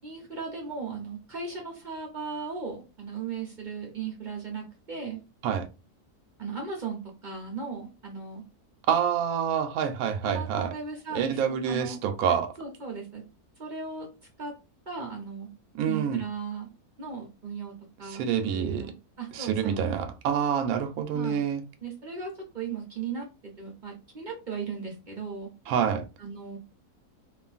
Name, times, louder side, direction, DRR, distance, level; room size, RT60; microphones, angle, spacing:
voice 1, 0.0-5.2 6.4-8.4 10.2-11.4 11.7-12.0 12.3-13.2 13.6-14.1 14.4-14.5 14.9-15.5 15.8-16.7 17.0-17.7 18.0-18.2 18.5-19.8 21.1-21.4 21.8-25.5 26.2-26.6, right 5 dB, 45° right, 0.6 m, -37 dB
voice 2, 8.9-10.7 11.1-12.5 15.7-16.2 18.1-18.9 19.3-21.6 25.7-26.0, right 8 dB, 70° right, 1.0 m, -27 dB
3.0 x 2.4 x 2.4 m
omnidirectional pair, 1.7 m